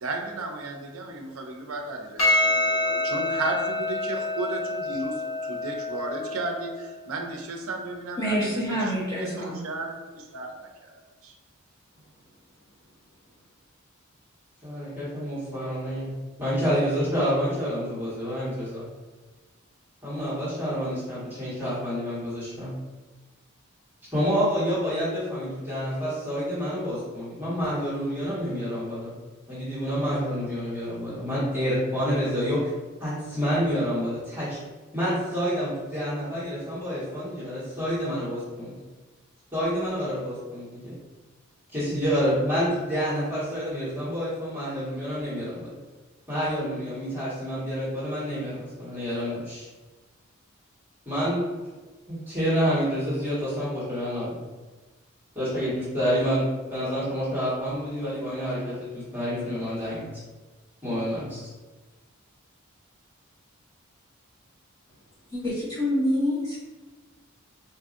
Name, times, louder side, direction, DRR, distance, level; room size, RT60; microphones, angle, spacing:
voice 1, 0.0-11.4, right 2 dB, 70° right, 3 dB, 0.5 m, -34 dB
Percussion, 2.2-6.8, left 2 dB, 65° left, 1.2 m, -27 dB
voice 2, 8.2-9.5 65.3-66.6, equal, 15° left, -9 dB, 1.2 m, -26 dB
voice 3, 14.6-16.1 16.4-18.8 20.0-22.7 24.1-29.1 29.5-32.7 33.0-34.6 34.9-38.7 39.5-40.9 41.7-45.7 46.3-49.7 51.0-51.4 52.1-54.4 55.3-56.4 56.7-60.0 60.8-61.5, equal, 10° right, -12 dB, 1.3 m, -28 dB
4.0 x 2.6 x 2.4 m, 1.2 s
head